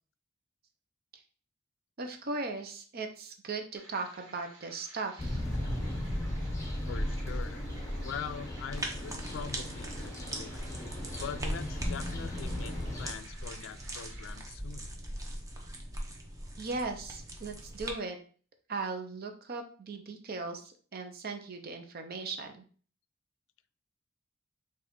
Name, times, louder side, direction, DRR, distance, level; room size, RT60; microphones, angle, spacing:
voice 1, 2.0-5.4 16.6-18.2 18.7-22.6, right 3 dB, 50° right, 5 dB, 0.7 m, -38 dB
sound 1, 3.7-14.4, right 2 dB, 80° right, 1.3 m, -55 dB
sound 2, 5.2-13.1, left 1 dB, 15° left, 0.7 m, -36 dB
voice 2, 6.9-7.6 8.0-10.7 11.1-14.9, left 7 dB, 75° left, 13 dB, 0.3 m, -43 dB
sound 3, 8.7-17.9, right 1 dB, 15° right, 0.7 m, -40 dB
4.0 x 2.4 x 4.3 m, 0.42 s
head